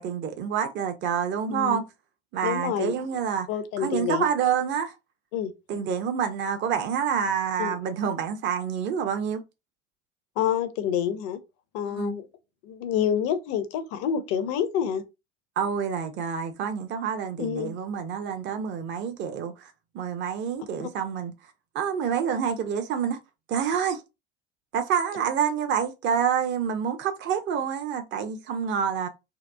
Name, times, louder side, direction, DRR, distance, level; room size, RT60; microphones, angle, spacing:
voice 1, 0.0-1.8 2.3-3.5 3.8-4.9 5.7-9.4 11.9-12.1 15.6-21.3 21.7-23.2 23.5-24.0 24.7-29.1, right 7 dB, 40° right, 0.5 m, -27 dB
voice 2, 1.5-1.8 2.4-2.9 3.5-4.2 5.3-5.5 7.6-7.7 10.4-11.4 11.7-12.3 12.6-15.0 17.4-17.7 20.8-20.9, left 9 dB, 55° left, 0.5 m, -27 dB
2.8 x 2.0 x 2.2 m
hypercardioid pair, 70°, 30 cm